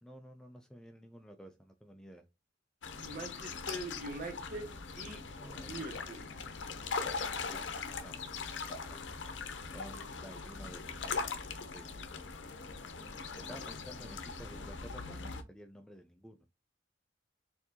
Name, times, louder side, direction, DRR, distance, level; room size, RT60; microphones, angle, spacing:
voice 1, 0.0-2.2 5.4-5.9 7.5-7.7 8.0-8.2 8.7-9.0 9.7-11.4 11.7-12.1 13.3-16.4, equal, 5° left, 0.3 m, -52 dB
sound 1, 2.8-15.4, left 4 dB, 75° left, 0.6 m, -41 dB
voice 2, 3.0-5.2 5.7-6.3, right 1 dB, 50° right, 1.4 m, -43 dB
4.3 x 2.7 x 2.7 m
head